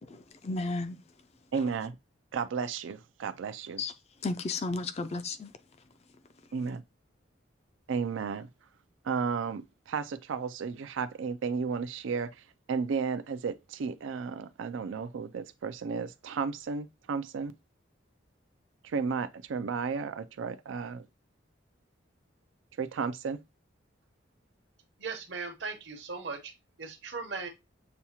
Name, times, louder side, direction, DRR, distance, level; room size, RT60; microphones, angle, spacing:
voice 1, 0.0-1.0 3.8-3.9 4.2-5.5, left 3 dB, 35° left, 0.4 m, -33 dB
voice 2, 1.5-2.0 2.3-3.8 6.5-6.8 7.9-8.5 9.0-12.3 12.7-17.5 18.8-21.1 22.8-23.4, right 5 dB, 80° right, 0.4 m, -33 dB
voice 3, 25.0-26.5 26.8-27.5, right 4 dB, 60° right, 0.9 m, -38 dB
6.9 x 2.3 x 2.9 m
head